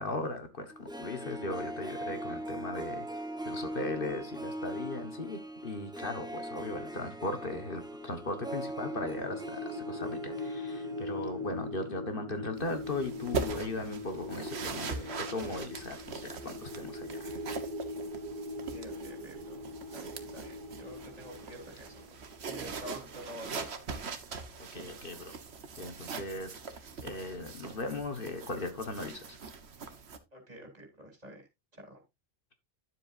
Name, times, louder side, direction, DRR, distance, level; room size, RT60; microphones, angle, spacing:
voice 1, 0.0-17.3 24.6-25.3 25.8-26.6 27.0-29.4, left 2 dB, 55° left, 1.5 m, -38 dB
Harp, 0.7-11.7 12.0-12.1, right 1 dB, 5° right, 1.0 m, -41 dB
sound 1, 8.0-23.0, left 2 dB, 55° right, 0.9 m, -42 dB
sound 2, 12.6-30.2, right 5 dB, 75° right, 1.4 m, -42 dB
voice 2, 18.7-22.1 22.4-23.7 30.3-31.4 31.7-32.0, equal, 35° right, 3.3 m, -48 dB
11.5 x 7.7 x 2.6 m
omnidirectional pair, 1.1 m